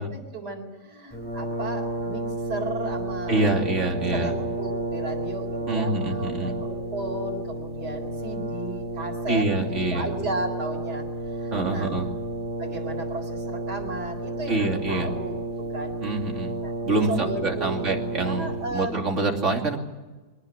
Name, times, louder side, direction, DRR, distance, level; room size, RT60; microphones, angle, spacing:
voice 1, 0.0-11.0 11.3-11.9 12.6-16.0 16.6-16.7 17.1-17.8 18.2-18.9, right 2 dB, 75° right, -1 dB, 4.9 m, -34 dB
Brass instrument, 1.1-18.9, right 2 dB, 5° left, 6.6 m, -31 dB
voice 2, 3.3-4.3 5.7-6.6 9.3-10.1 11.5-12.1 14.5-15.1 16.0-16.6 16.8-19.8, right 2 dB, 45° right, 1 dB, 3.3 m, -26 dB
23.5 x 19.5 x 9.9 m, 1.2 s
omnidirectional pair, 1.7 m